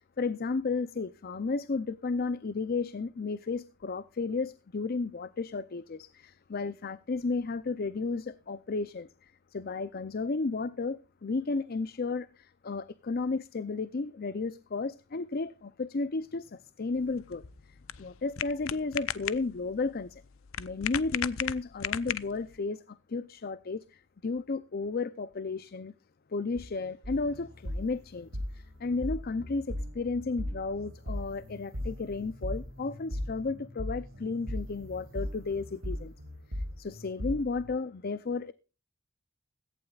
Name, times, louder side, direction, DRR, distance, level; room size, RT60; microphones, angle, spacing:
voice 1, 0.0-20.2 20.6-25.9 26.3-36.1 36.5-38.5, left 3 dB, 50° left, 0.5 m, -33 dB
sound 1, 17.0-22.6, left 9 dB, 85° left, 0.7 m, -37 dB
sound 2, 27.0-37.7, left 1 dB, 85° right, 5.3 m, -38 dB
17.0 x 15.0 x 2.4 m
head